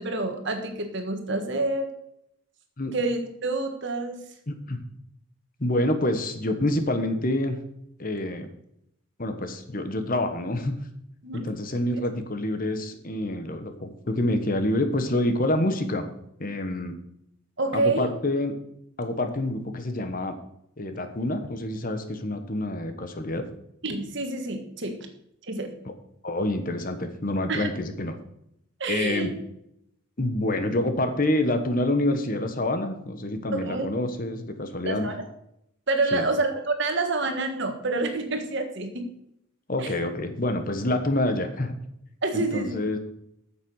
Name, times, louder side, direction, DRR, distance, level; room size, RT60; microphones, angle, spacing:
voice 1, 0.0-1.9 2.9-4.2 11.2-11.4 17.6-18.1 23.8-25.1 25.5-25.8 27.5-27.7 28.8-29.3 33.5-33.9 34.8-35.3 35.9-39.1 39.8-40.1 42.2-42.7, right 2 dB, 55° right, 6 dB, 1.6 m, -28 dB
voice 2, 4.5-4.8 5.6-7.6 8.0-8.5 9.2-10.9 11.3-16.1 16.4-17.0 17.7-18.5 19.0-20.3 20.8-23.5 25.8-25.9 26.2-28.1 28.9-29.3 30.2-35.1 36.1-36.3 39.7-41.7 42.3-43.0, left 1 dB, 40° left, 8 dB, 1.2 m, -27 dB
9.3 x 7.4 x 6.4 m, 0.76 s
head